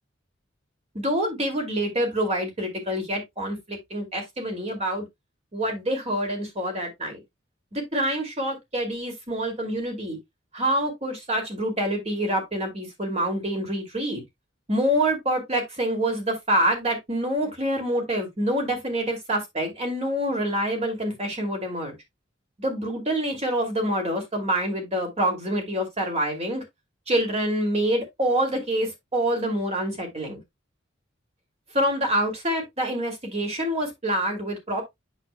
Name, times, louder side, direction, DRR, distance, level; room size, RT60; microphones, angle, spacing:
voice 1, 0.9-5.0 5.5-7.2 7.7-10.2 10.5-14.2 14.7-21.9 22.6-26.6 27.1-30.4 31.7-34.8, right 1 dB, 35° right, 2.5 m, -26 dB
8.2 x 7.1 x 2.2 m
head